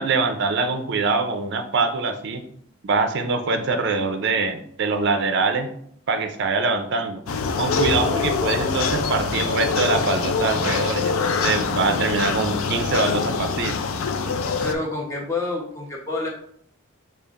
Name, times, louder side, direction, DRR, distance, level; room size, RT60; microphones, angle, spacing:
voice 1, 0.0-2.4 2.8-5.7 6.1-7.2 7.6-13.7, right 3 dB, 55° right, 7 dB, 0.4 m, -23 dB
sound 1, 7.3-14.7, left 5 dB, 75° left, 0.4 m, -24 dB
voice 2, 14.6-16.3, left 3 dB, 15° left, -2 dB, 0.8 m, -28 dB
6.7 x 2.4 x 2.4 m, 0.68 s
head